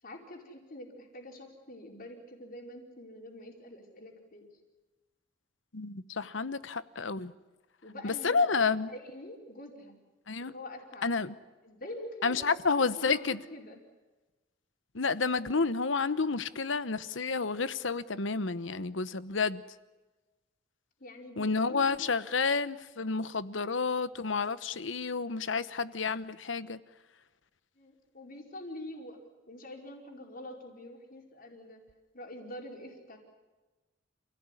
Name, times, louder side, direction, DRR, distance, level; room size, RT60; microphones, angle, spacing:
voice 1, 0.0-4.5 7.8-8.4 8.9-10.0 10.4-11.2 11.6-12.5 12.8-13.8 21.0-22.1 27.8-29.2 29.5-31.8 32.1-33.2, left 1 dB, 50° left, 5.0 m, -45 dB
voice 2, 5.7-7.3 8.0-8.9 10.3-10.5 11.0-11.3 12.2-13.4 14.9-19.6 21.4-26.8, left 4 dB, 85° left, 1.1 m, -30 dB
29.0 x 17.0 x 9.9 m
head